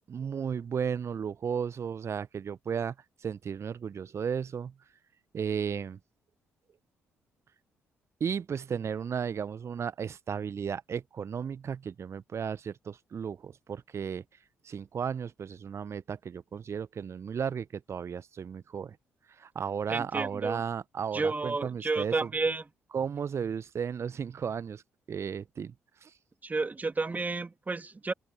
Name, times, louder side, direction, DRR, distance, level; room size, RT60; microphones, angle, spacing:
voice 1, 0.1-2.9 3.2-4.7 5.3-6.0 8.2-14.2 14.6-19.0 19.3-22.3 22.9-24.8 25.1-25.7 26.0-26.1, right 7 dB, 40° right, 1.3 m, -34 dB
voice 2, 19.9-20.6 21.1-22.6 26.4-28.1, right 3 dB, 25° right, 3.1 m, -31 dB
open air
figure-of-eight pair, 40°, 7 cm